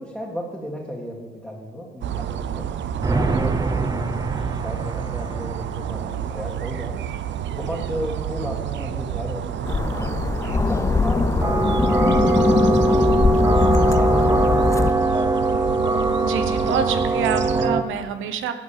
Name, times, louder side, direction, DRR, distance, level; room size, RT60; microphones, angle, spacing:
voice 1, 0.0-2.7 3.1-7.0 7.5-10.1 10.5-13.6 13.9-15.3, equal, ahead, -4 dB, 1.9 m, -34 dB
sound 1, 2.0-17.7, right 9 dB, 65° right, 0.7 m, -30 dB
sound 2, 3.0-5.9 11.4-17.8, right 2 dB, 20° right, 0.7 m, -22 dB
sound 3, 9.7-14.9, left 4 dB, 15° left, 0.4 m, -21 dB
voice 2, 15.9-18.5, right 8 dB, 85° right, 9 dB, 1.0 m, -27 dB
11.5 x 6.3 x 7.4 m, 1.3 s
cardioid pair, 90°, 20 cm